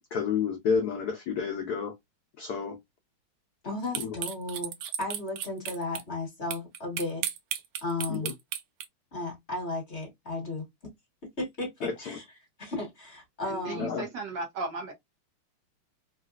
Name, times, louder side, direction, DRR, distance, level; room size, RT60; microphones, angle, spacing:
voice 1, 0.1-2.0 2.4-2.8 3.9-4.1 8.1-8.3 11.8-12.2 13.7-14.0, left 6 dB, 75° left, 0.9 m, -30 dB
voice 2, 3.6-7.3 7.8-8.3 9.1-10.7 11.4-12.2 12.6-13.9, left 2 dB, 35° left, 1.6 m, -34 dB
sound 1, 4.0-6.0 6.5-8.9, right 10 dB, 85° right, 1.5 m, -33 dB
voice 3, 13.5-14.9, right 3 dB, 65° right, 1.3 m, -36 dB
3.8 x 2.3 x 2.4 m
omnidirectional pair, 2.3 m